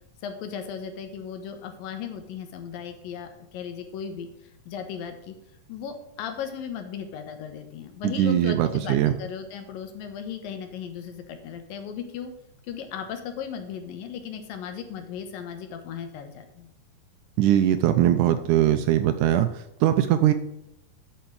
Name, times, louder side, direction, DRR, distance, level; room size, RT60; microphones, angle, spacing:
voice 1, 0.2-4.3 4.7-5.3 5.7-12.3 12.6-16.7, left 7 dB, 85° left, 7 dB, 2.9 m, -36 dB
voice 2, 8.0-9.1 17.4-19.5 19.8-20.3, right 11 dB, 75° right, 9 dB, 1.9 m, -21 dB
8.8 x 6.0 x 7.6 m, 0.79 s
omnidirectional pair, 4.0 m